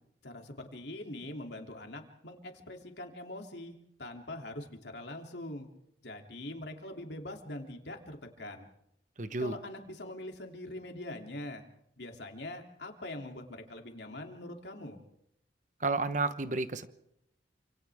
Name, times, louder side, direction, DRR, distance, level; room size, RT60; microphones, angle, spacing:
voice 1, 0.2-5.7 6.0-8.7 9.4-11.6 12.0-15.0, left 1 dB, 80° left, 3 dB, 3.0 m, -43 dB
voice 2, 9.2-9.6 15.8-16.9, right 3 dB, 45° right, 11 dB, 1.1 m, -31 dB
28.5 x 26.5 x 3.6 m, 0.78 s
head